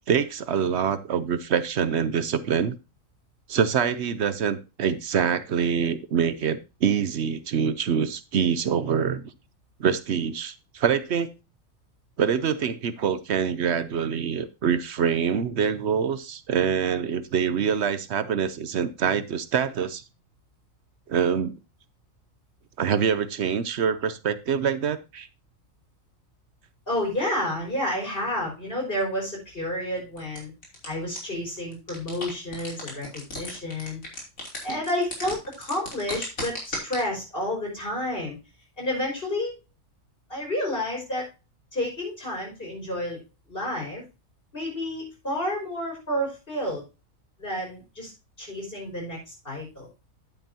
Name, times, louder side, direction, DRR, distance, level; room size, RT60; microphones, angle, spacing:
voice 1, 0.1-2.8 3.5-9.3 9.8-11.3 12.2-20.0 21.1-21.5 22.8-25.3 34.7-34.8, right 7 dB, 60° right, 14 dB, 0.9 m, -25 dB
voice 2, 26.9-30.5 30.8-34.0 34.6-38.4 38.8-39.5 40.3-41.3 41.7-43.2 43.5-44.0 44.5-46.8 47.4-48.1 48.4-49.9, left 1 dB, 45° left, -2 dB, 5.8 m, -30 dB
sound 1, 30.2-30.9 31.2-31.3 31.6-37.0, left 2 dB, 80° left, 3.8 m, -34 dB
10.5 x 8.9 x 2.8 m, 0.27 s
omnidirectional pair, 1.4 m